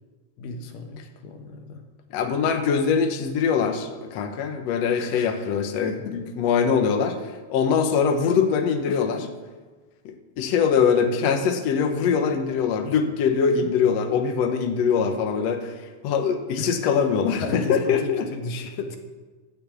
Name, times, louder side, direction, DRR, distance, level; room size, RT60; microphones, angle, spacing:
voice 1, 0.4-1.9 5.0-5.5 5.9-6.2 8.9-9.3 16.6-16.7 17.4-19.0, left 3 dB, 85° left, 5 dB, 2.9 m, -35 dB
voice 2, 2.1-9.2 10.1-15.7 16.0-18.3, left 6 dB, 60° left, 5 dB, 2.0 m, -23 dB
13.0 x 8.5 x 8.6 m, 1.3 s
omnidirectional pair, 3.8 m